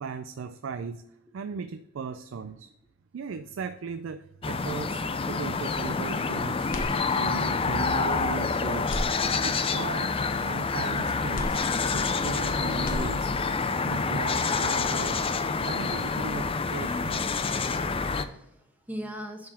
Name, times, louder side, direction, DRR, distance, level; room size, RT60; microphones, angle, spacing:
voice 1, 0.0-1.0 1.3-2.7 3.1-6.7 7.2-8.9 9.4-10.2 10.5-11.6 11.9-13.3 13.8-15.2 15.6-17.2, right 5 dB, 80° right, 0.4 m, -37 dB
sound 1, 4.4-18.3, left 4 dB, 30° left, 0.5 m, -27 dB
sound 2, 6.7-7.6 8.0-8.1 8.8-9.8 11.3-12.4 12.7-13.7, left 1 dB, 45° left, 0.9 m, -37 dB
voice 2, 17.2-19.5, equal, 10° right, 1.1 m, -41 dB
10.5 x 4.1 x 4.3 m
head